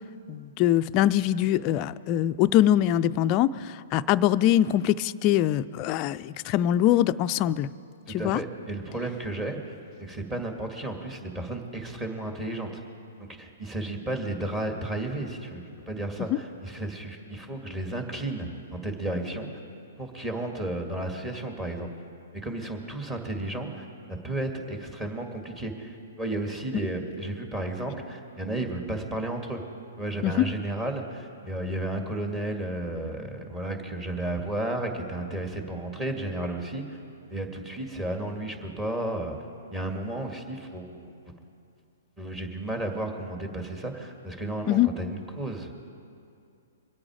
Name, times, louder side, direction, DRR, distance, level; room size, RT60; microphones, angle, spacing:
voice 1, 0.3-7.7 8.1-8.4 16.3-16.4 30.2-30.5 44.7-44.9, left 12 dB, 35° left, 12 dB, 0.4 m, -23 dB
voice 2, 8.1-9.7 10.0-12.8 13.2-19.5 20.0-21.9 22.3-29.6 30.0-37.0 37.3-39.4 39.7-41.1 42.2-45.7, right 1 dB, 15° right, 3 dB, 2.0 m, -33 dB
23.5 x 8.6 x 4.9 m, 2.5 s
hypercardioid pair, 125°, 0 cm